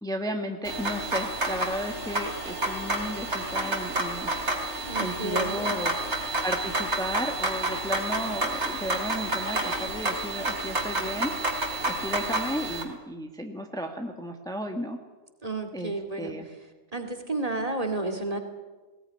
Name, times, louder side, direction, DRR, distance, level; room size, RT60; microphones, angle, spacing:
voice 1, 0.0-4.3 5.0-6.0 6.4-11.3 11.8-15.0 15.7-16.5, equal, 5° left, 4 dB, 1.5 m, -34 dB
sound 1, 0.6-12.8, right 2 dB, 60° right, 3.3 m, -30 dB
voice 2, 4.9-5.8 15.4-16.3 16.9-18.4, right 2 dB, 30° right, 5 dB, 2.5 m, -31 dB
20.0 x 18.0 x 9.8 m, 1.3 s
omnidirectional pair, 1.4 m